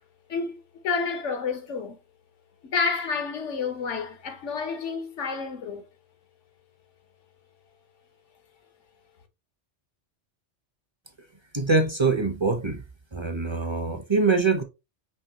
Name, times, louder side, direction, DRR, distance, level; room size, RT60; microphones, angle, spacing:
voice 1, 0.3-2.0 2.6-5.8, left 5 dB, 85° left, 1.3 m, -29 dB
voice 2, 11.5-12.8 13.1-14.6, right 4 dB, 30° right, 0.6 m, -24 dB
5.6 x 3.1 x 2.8 m
omnidirectional pair, 1.2 m